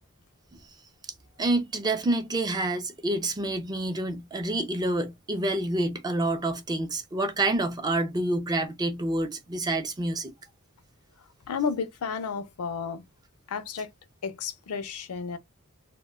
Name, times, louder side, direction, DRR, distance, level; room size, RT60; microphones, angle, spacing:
voice 1, 1.4-10.3, right 2 dB, 20° right, 0.4 m, -28 dB
voice 2, 11.5-13.0 13.5-13.9 14.2-15.4, left 5 dB, 70° left, 0.4 m, -32 dB
2.1 x 2.1 x 3.4 m
head